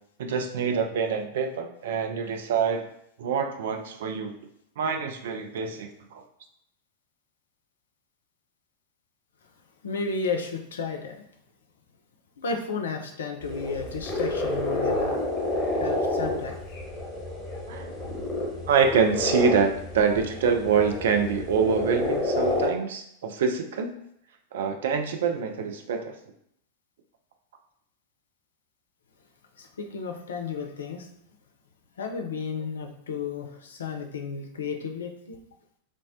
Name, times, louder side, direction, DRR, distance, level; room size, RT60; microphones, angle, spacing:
voice 1, 0.2-2.8 3.2-4.3 4.8-6.2 17.7-17.9 18.7-23.9 24.5-26.1, right 6 dB, 60° right, 4 dB, 0.3 m, -25 dB
voice 2, 9.8-11.1 12.4-15.1 15.8-16.5 29.6-31.1 32.0-35.4, left 4 dB, 65° left, 4 dB, 0.4 m, -33 dB
sound 1, 13.4-22.7, left 1 dB, 30° left, 1.0 m, -29 dB
3.3 x 2.0 x 2.5 m, 0.72 s
figure-of-eight pair, 90°, 0 cm